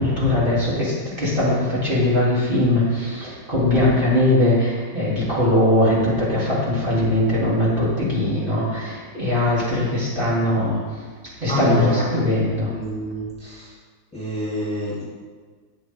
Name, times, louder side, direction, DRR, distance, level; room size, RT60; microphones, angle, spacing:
voice 1, 0.0-10.8 11.4-12.7, left 1 dB, 30° right, -9 dB, 3.6 m, -20 dB
voice 2, 11.5-12.1 12.7-13.8 14.1-15.0, equal, 5° left, -7 dB, 3.1 m, -28 dB
14.0 x 9.1 x 3.7 m, 1.5 s
omnidirectional pair, 1.7 m